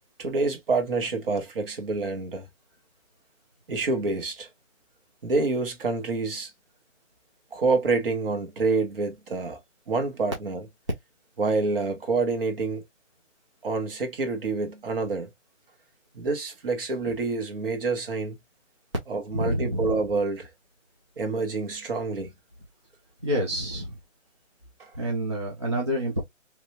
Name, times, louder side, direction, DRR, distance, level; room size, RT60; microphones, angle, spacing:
voice 1, 0.2-2.5 3.7-4.5 5.2-6.5 7.5-9.6 9.9-10.6 11.4-12.8 13.6-15.3 16.1-18.4 19.1-20.5 21.2-22.3 24.8-24.9, right 3 dB, 45° right, 1.3 m, -27 dB
voice 2, 19.3-20.0 23.2-24.0 24.9-26.2, equal, 25° right, 0.5 m, -28 dB
3.3 x 2.8 x 2.7 m
hypercardioid pair, 160°, 38 cm